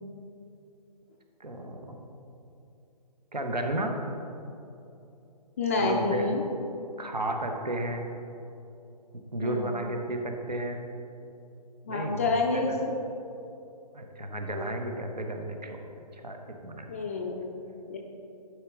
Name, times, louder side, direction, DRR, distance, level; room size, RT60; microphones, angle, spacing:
voice 1, 1.4-2.1 3.3-3.9 5.8-6.3 7.0-8.1 9.3-10.9 11.9-12.2 12.5-12.8 13.9-15.8 16.1-16.4 16.6-16.9, right 1 dB, 80° right, 4 dB, 1.1 m, -33 dB
voice 2, 5.6-6.4 9.4-9.7 11.9-12.9 16.9-17.3 17.9-18.0, left 3 dB, 20° left, -1 dB, 0.4 m, -28 dB
11.0 x 4.8 x 3.8 m, 2.8 s
figure-of-eight pair, 135°, 21 cm